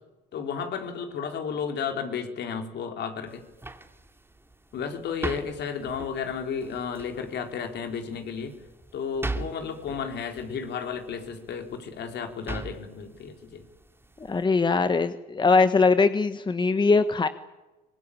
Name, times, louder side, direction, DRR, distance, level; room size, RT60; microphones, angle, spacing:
voice 1, 0.3-3.4 4.7-8.5 8.9-13.6, left 6 dB, 60° left, 5 dB, 4.1 m, -33 dB
sound 1, 3.3-14.4, right 2 dB, 10° right, 2.9 m, -41 dB
voice 2, 14.2-17.3, left 4 dB, 25° left, 11 dB, 1.2 m, -21 dB
24.5 x 20.5 x 8.6 m, 1.1 s
supercardioid pair, 85°, 20 cm